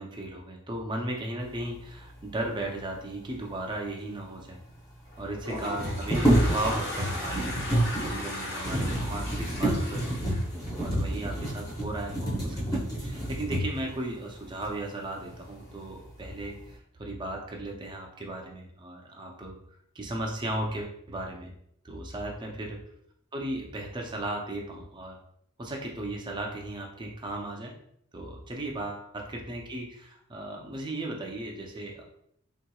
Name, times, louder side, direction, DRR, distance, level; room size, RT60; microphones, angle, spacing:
voice 1, 0.0-4.6 5.2-7.5 8.1-10.2 10.8-21.5 21.8-22.8 23.3-25.2 25.6-27.7 28.1-32.0, right 1 dB, 20° right, 0 dB, 0.5 m, -36 dB
sound 1, 4.1-4.2 4.4-4.5 5.6-13.9 14.6-14.7 15.2-15.8 16.2-16.7, right 1 dB, 15° left, 0.8 m, -28 dB
Toilet flush, 5.1-11.4, left 1 dB, 45° left, 1.2 m, -37 dB
3.6 x 2.8 x 2.3 m, 0.72 s
head